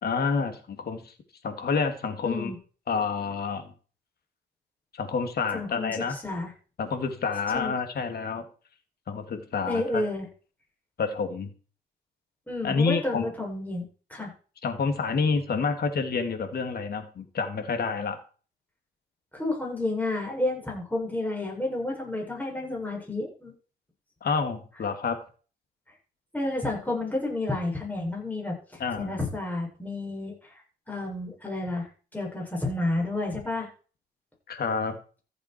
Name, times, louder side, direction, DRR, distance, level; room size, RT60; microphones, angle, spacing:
voice 1, 0.0-1.1 1.4-2.5 2.9-3.7 5.0-6.2 6.8-8.5 9.1-10.0 11.0-11.5 12.6-13.3 14.6-18.2 24.2-25.2 28.8-29.1 34.5-35.0, left 5 dB, 50° left, 7 dB, 2.6 m, -28 dB
voice 2, 2.2-2.6 5.5-6.5 7.5-7.7 9.7-10.3 12.5-14.3 19.3-23.5 26.3-28.6 29.0-30.3 30.9-33.7, left 2 dB, 10° left, -1 dB, 7.1 m, -30 dB
14.5 x 8.1 x 4.6 m, 0.38 s
cardioid pair, 90°, 20 cm